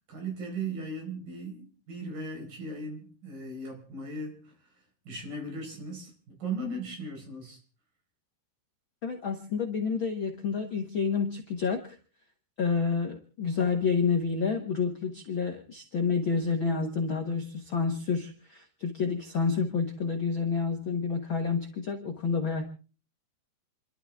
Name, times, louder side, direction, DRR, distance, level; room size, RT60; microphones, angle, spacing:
voice 1, 0.1-4.7 5.0-7.6, right 2 dB, 55° right, 2 dB, 6.3 m, -37 dB
voice 2, 9.0-12.0 12.6-22.6, left 5 dB, 85° left, 2 dB, 1.1 m, -29 dB
29.0 x 12.5 x 3.6 m, 0.37 s
omnidirectional pair, 4.6 m